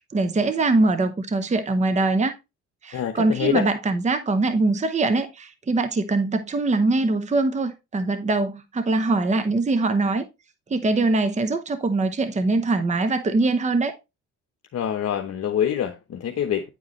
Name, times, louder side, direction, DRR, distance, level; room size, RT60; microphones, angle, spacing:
voice 1, 0.1-2.4 2.8-10.3 10.7-13.9, right 3 dB, 25° right, 0.8 m, -22 dB
voice 2, 2.9-3.7 14.7-16.7, left 9 dB, 55° left, 1.0 m, -25 dB
9.8 x 4.8 x 3.1 m
cardioid pair, 90°, 30 cm